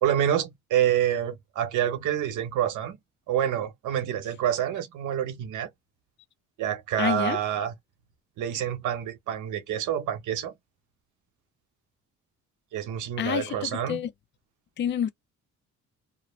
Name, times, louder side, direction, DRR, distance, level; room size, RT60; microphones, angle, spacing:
voice 1, 0.0-3.0 3.3-5.7 6.6-7.7 8.4-10.5 12.7-14.0, right 10 dB, 80° right, 0.8 m, -27 dB
voice 2, 7.0-7.4 13.2-14.1 14.8-15.1, left 9 dB, 40° left, 0.4 m, -28 dB
2.4 x 2.0 x 3.0 m
cardioid pair, 90°, 30 cm